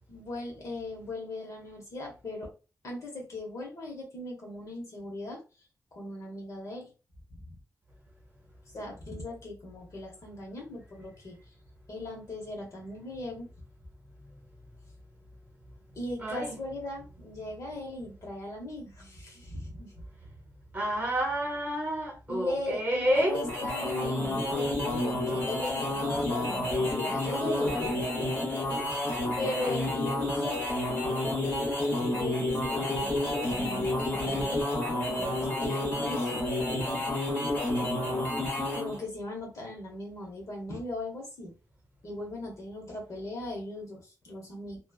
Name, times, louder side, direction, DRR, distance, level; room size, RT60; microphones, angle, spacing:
voice 1, 0.1-2.5 2.8-5.4 5.9-6.9 7.3-7.6 8.7-11.4 11.9-13.5 15.9-19.9 22.3-28.0 29.4-30.6 32.1-34.7 35.2-36.4 38.7-41.5 42.0-44.8, left 2 dB, 55° left, 1.1 m, -38 dB
voice 2, 16.2-16.6 20.7-23.4, equal, 25° right, 0.9 m, -29 dB
sound 1, 23.2-39.0, left 1 dB, 30° left, 1.1 m, -30 dB
3.1 x 2.2 x 2.3 m
wide cardioid pair, 170°, 7 cm